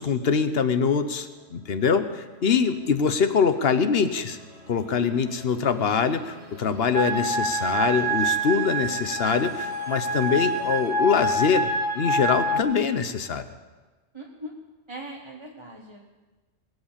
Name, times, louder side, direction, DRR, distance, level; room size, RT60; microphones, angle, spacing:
voice 1, 0.0-4.4 4.7-11.7 11.9-13.5, left 6 dB, 55° left, 10 dB, 1.1 m, -24 dB
sound 1, 0.9-10.9, equal, 75° left, 4.4 m, -48 dB
sound 2, 6.9-12.6, right 1 dB, 15° left, 1.9 m, -26 dB
voice 2, 14.1-14.6 14.9-16.0, right 1 dB, 25° right, -2 dB, 1.2 m, -40 dB
21.0 x 8.1 x 7.4 m, 1.3 s
omnidirectional pair, 1.3 m